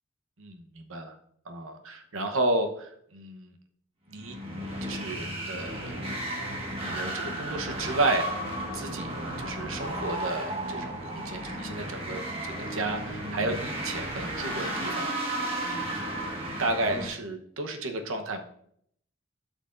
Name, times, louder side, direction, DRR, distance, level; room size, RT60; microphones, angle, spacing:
voice 1, 0.4-1.2 1.5-3.5 4.1-4.4 4.8-5.8 6.8-8.3 8.6-9.1 9.4-16.0 16.6-18.4, right 2 dB, 80° right, 5 dB, 1.0 m, -32 dB
sound 1, 4.2-17.1, right 1 dB, 25° right, 1.5 m, -34 dB
12.0 x 6.5 x 2.6 m, 0.68 s
head